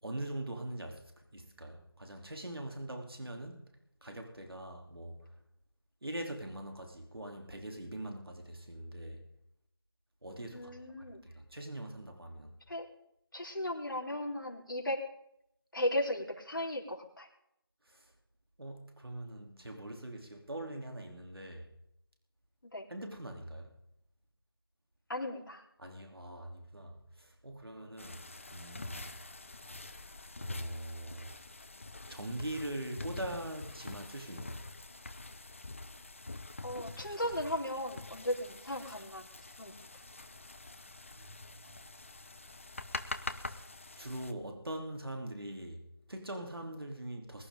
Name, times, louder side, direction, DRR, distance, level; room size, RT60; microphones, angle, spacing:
voice 1, 0.0-1.0 1.3-3.7 4.0-5.2 6.0-9.2 10.2-10.7 11.0-11.1 11.3-12.6 17.9-18.1 18.6-21.7 22.9-23.7 25.8-28.2 28.5-29.1 29.8-30.0 30.4-31.3 32.1-34.6 41.2-41.8 43.3-43.6 44.0-47.5, right 1 dB, 80° right, 3.3 m, -42 dB
voice 2, 10.5-11.2 12.7-12.9 13.3-15.0 15.7-17.3 22.7-22.9 25.1-25.6 36.6-39.3 39.5-39.8, left 1 dB, 60° left, 3.9 m, -36 dB
sound 1, 28.0-44.3, left 2 dB, 35° left, 0.8 m, -45 dB
22.5 x 11.5 x 3.8 m
figure-of-eight pair, 170°, 12 cm